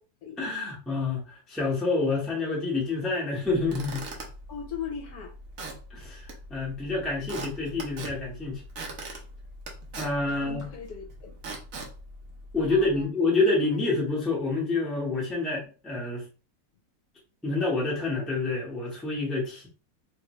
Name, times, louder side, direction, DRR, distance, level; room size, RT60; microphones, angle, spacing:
voice 1, 0.4-4.1 5.9-8.6 10.0-10.6 12.5-16.2 17.4-19.7, left 3 dB, ahead, -4 dB, 0.7 m, -28 dB
Squeak / Wood, 3.4-13.0, right 2 dB, 60° right, 1.1 m, -42 dB
voice 2, 4.5-5.3 10.3-11.3 12.7-13.1, left 7 dB, 65° left, 1 dB, 1.1 m, -38 dB
3.2 x 2.6 x 3.0 m, 0.36 s
omnidirectional pair, 1.9 m